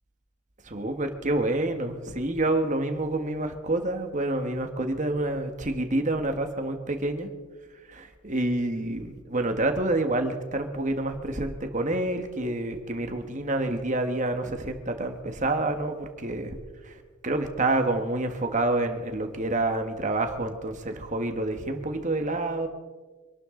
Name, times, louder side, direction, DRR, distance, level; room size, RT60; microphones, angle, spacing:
voice 1, 0.7-7.3 7.9-16.5 16.8-16.9 17.2-22.7, right 2 dB, 35° right, 6 dB, 1.5 m, -28 dB
26.5 x 12.5 x 3.9 m, 1.4 s
head